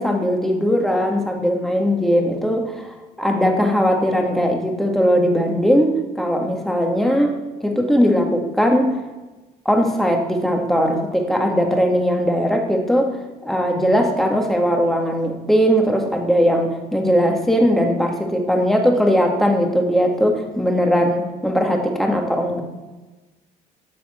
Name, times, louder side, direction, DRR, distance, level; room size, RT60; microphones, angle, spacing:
voice 1, 0.0-7.3 7.6-9.0 9.7-22.6, equal, ahead, 2 dB, 1.7 m, -19 dB
12.0 x 7.1 x 4.3 m, 1.2 s
cardioid pair, 110°, 17 cm